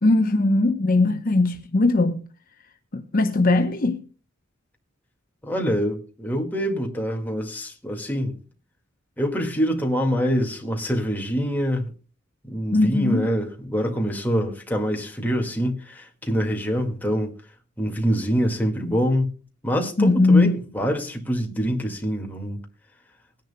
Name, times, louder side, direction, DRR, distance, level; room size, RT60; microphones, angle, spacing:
voice 1, 0.0-2.1 2.9-4.0 12.7-13.3 20.0-20.6, left 2 dB, 45° left, 0.8 m, -19 dB
voice 2, 5.4-8.4 9.2-11.8 12.4-17.3 17.8-19.3 19.6-22.6, equal, 10° left, 1.9 m, -25 dB
21.0 x 10.5 x 2.2 m
head